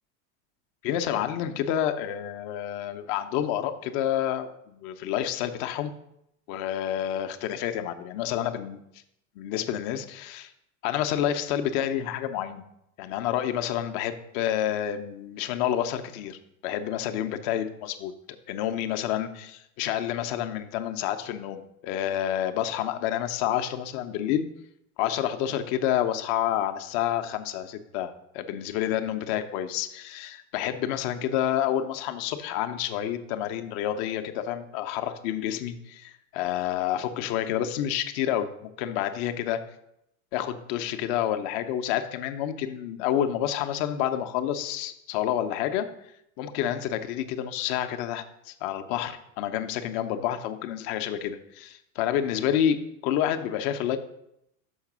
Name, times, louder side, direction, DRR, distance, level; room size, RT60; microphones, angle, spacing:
voice 1, 0.8-5.9 6.5-8.8 9.4-10.5 10.8-12.6 13.0-18.1 18.5-24.4 25.0-39.6 40.3-45.9 46.4-52.8 53.0-54.0, left 10 dB, 50° left, 8 dB, 0.8 m, -29 dB
6.4 x 4.9 x 6.0 m, 0.79 s
supercardioid pair, 135°, 42 cm